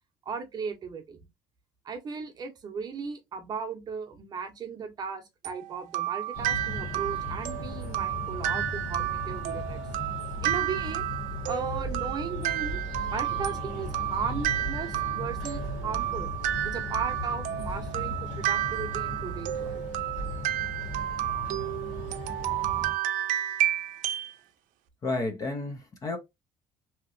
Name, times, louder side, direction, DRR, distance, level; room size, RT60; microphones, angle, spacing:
voice 1, 0.3-1.3 1.8-9.8 10.4-11.0 11.4-12.8 13.1-16.3 16.6-19.8, right 5 dB, 30° right, 0.7 m, -36 dB
sound 1, 5.4-24.3, right 13 dB, 80° right, 0.5 m, -31 dB
sound 2, 6.3-22.9, left 1 dB, 75° left, 1.6 m, -37 dB
voice 2, 25.0-26.2, left 2 dB, 25° left, 0.5 m, -31 dB
2.9 x 2.8 x 2.5 m
cardioid pair, 165°, 13 cm